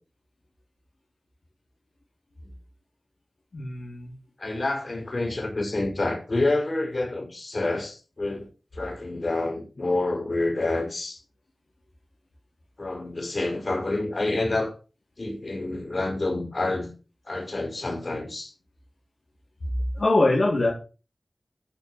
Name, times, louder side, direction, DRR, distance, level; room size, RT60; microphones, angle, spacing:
voice 1, 3.5-4.1 20.0-20.7, left 2 dB, 75° left, 3.9 m, -22 dB
voice 2, 4.4-8.5 8.7-11.2 12.8-14.7 15.2-16.9 17.3-18.5, left 2 dB, 55° left, 6.1 m, -28 dB
14.5 x 5.5 x 6.4 m
cardioid pair, 45°, 0 cm